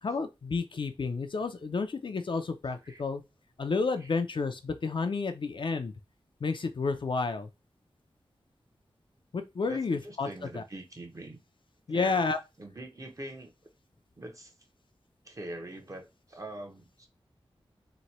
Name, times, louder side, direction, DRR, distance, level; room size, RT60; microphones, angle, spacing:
voice 1, 0.0-3.2 3.6-5.9 6.4-7.5 9.3-10.3 10.5-10.6 11.9-12.4, left 4 dB, 55° left, 0.5 m, -30 dB
voice 2, 9.6-11.4 11.9-12.2 12.6-13.5 14.2-14.5 15.2-17.1, right 1 dB, 35° right, 0.8 m, -43 dB
3.0 x 2.2 x 4.1 m
wide cardioid pair, 100°, 10 cm